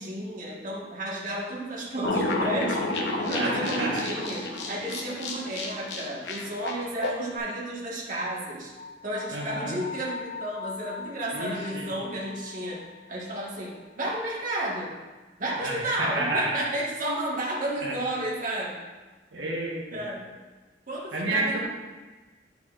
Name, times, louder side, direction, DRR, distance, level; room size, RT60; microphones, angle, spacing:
voice 1, 0.0-8.7 9.0-12.8 13.1-14.9 15.4-18.8 19.9-20.4 20.9-21.6, right 1 dB, 50° right, -5 dB, 1.5 m, -32 dB
sound 1, 2.0-7.2, left 2 dB, 75° left, 0.9 m, -30 dB
voice 2, 3.3-4.0 9.3-9.8 11.3-11.9 15.6-16.6 17.8-17.9 19.3-20.0 21.1-21.7, right 2 dB, 75° right, -4 dB, 1.3 m, -30 dB
sound 2, 8.7-13.8, left 5 dB, 45° left, 1.0 m, -42 dB
9.2 x 5.7 x 2.4 m, 1.3 s
head